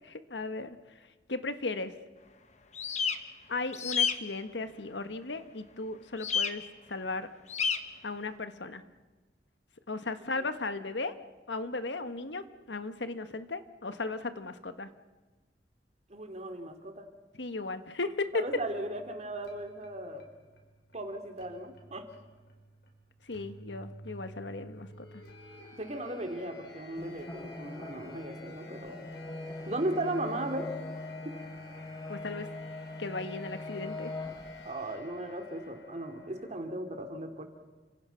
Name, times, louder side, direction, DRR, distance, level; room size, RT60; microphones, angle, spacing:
voice 1, 0.1-0.8 1.3-1.9 3.5-6.6 6.9-7.3 8.0-8.8 9.9-11.1 11.5-14.9 17.4-18.4 23.3-25.0 32.1-32.5 33.0-34.1, left 3 dB, 90° left, 10 dB, 1.4 m, -36 dB
sound 1, 2.7-3.2 3.7-4.1 6.2-6.5 7.5-7.8, left 6 dB, 40° left, 1.3 m, -28 dB
voice 2, 16.1-17.1 18.3-20.2 20.9-22.1 25.8-29.0 29.7-30.7 31.2-31.4 34.6-37.4, right 1 dB, 40° right, 5 dB, 2.6 m, -36 dB
sound 2, 18.5-36.5, left 1 dB, 75° left, 5.0 m, -51 dB
sound 3, 27.0-34.7, left 2 dB, 20° left, 1.1 m, -42 dB
29.5 x 25.5 x 5.8 m, 1.2 s
head